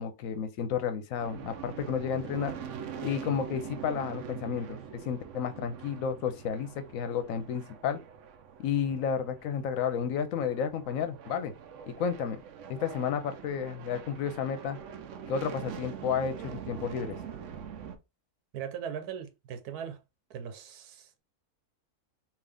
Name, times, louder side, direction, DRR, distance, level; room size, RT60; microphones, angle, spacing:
voice 1, 0.0-2.5 3.0-8.0 8.6-11.5 11.9-12.4 12.7-14.8 15.3-17.2, left 7 dB, 70° left, 1.0 m, -32 dB
sound 1, 1.2-18.0, right 8 dB, 65° right, 0.8 m, -44 dB
voice 2, 18.5-20.0 20.3-21.2, right 8 dB, 85° right, 1.2 m, -39 dB
3.8 x 2.6 x 3.4 m
omnidirectional pair, 1.6 m